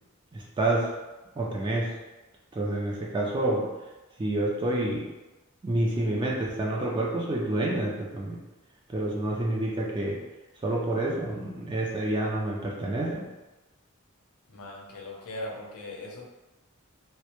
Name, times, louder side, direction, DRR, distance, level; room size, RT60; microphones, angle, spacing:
voice 1, 0.3-0.9 1.4-1.9 2.6-3.6 4.2-5.1 5.6-8.4 8.9-10.2 10.6-13.2, right 1 dB, 20° right, -3 dB, 0.3 m, -28 dB
voice 2, 14.5-16.3, left 1 dB, 90° left, -2 dB, 0.5 m, -39 dB
2.1 x 2.1 x 2.8 m, 1.1 s
head